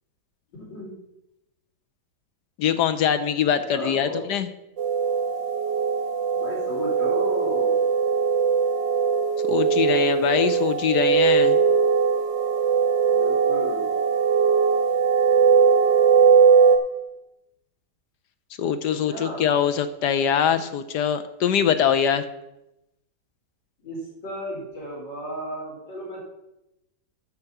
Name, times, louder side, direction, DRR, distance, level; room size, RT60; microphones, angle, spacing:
voice 1, 0.6-1.0 3.5-4.2 6.4-7.8 13.1-13.9 18.9-19.5 23.8-26.2, equal, 90° left, -4 dB, 5.1 m, -34 dB
voice 2, 2.6-4.5 9.5-11.6 18.6-22.2, left 8 dB, 75° left, 11 dB, 1.2 m, -23 dB
sound 1, 4.8-16.8, right 6 dB, 85° right, 2.1 m, -20 dB
9.1 x 6.6 x 7.2 m, 0.91 s
omnidirectional pair, 1.9 m